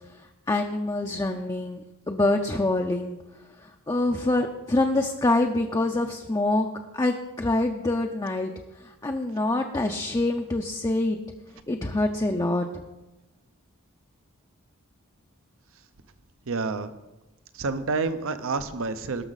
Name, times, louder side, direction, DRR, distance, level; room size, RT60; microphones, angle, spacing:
voice 1, 0.5-3.2 3.9-6.7 6.9-8.5 9.0-11.2 11.7-12.7, left 2 dB, 20° left, 3 dB, 0.5 m, -25 dB
voice 2, 16.5-16.9 17.5-19.2, right 4 dB, 65° right, 11 dB, 0.7 m, -28 dB
18.5 x 6.2 x 4.0 m, 1.1 s
head